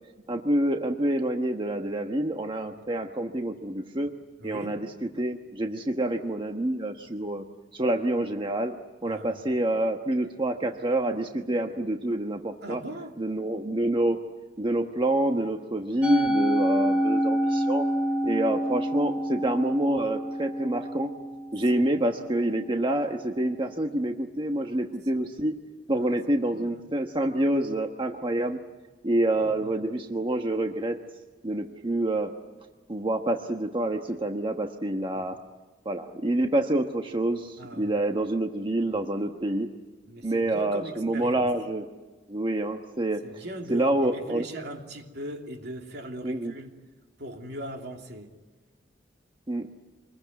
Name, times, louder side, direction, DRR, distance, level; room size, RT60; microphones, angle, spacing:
voice 1, 0.3-4.2 4.4-7.4 7.7-8.7 9.0-12.8 13.2-14.2 14.6-17.8 18.2-21.1 21.5-25.6 25.9-28.6 29.0-31.0 31.4-32.3 32.9-35.4 35.8-39.7 40.2-41.9 42.3-43.2 43.7-44.5 46.2-46.5 49.5-49.7, right 1 dB, 30° right, 4 dB, 1.2 m, -27 dB
voice 2, 4.4-4.8 9.0-9.4 12.6-13.1 21.7-21.9 25.9-26.1 26.5-26.8 29.3-29.7 35.1-35.3 37.6-38.0 40.1-41.5 43.2-46.7 47.2-48.3, right 1 dB, 65° right, 3 dB, 3.0 m, -39 dB
Musical instrument, 16.0-22.4, equal, 10° right, 2.1 m, -27 dB
26.5 x 21.5 x 9.3 m, 1.3 s
head